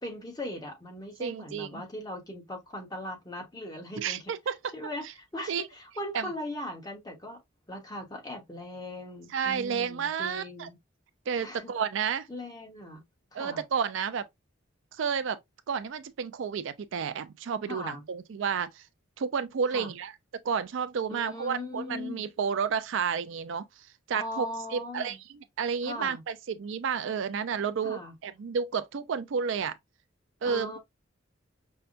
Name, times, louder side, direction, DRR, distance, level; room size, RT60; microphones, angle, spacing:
voice 1, 0.0-4.2 4.7-5.0 5.3-7.4 7.7-10.8 11.4-11.7 12.3-13.0 13.3-13.6 17.7-18.0 19.7-19.9 21.1-22.2 24.1-25.2 25.8-26.2 27.8-28.1 30.4-30.8, left 1 dB, 20° left, 1.2 m, -39 dB
voice 2, 1.2-1.8 4.0-4.6 5.5-5.7 6.1-6.3 9.3-10.7 11.3-12.3 13.3-14.3 15.0-15.4 15.7-18.8 19.2-23.6 24.1-24.5 24.7-29.7 30.4-30.8, right 6 dB, 70° right, 0.4 m, -31 dB
5.5 x 2.2 x 2.5 m
head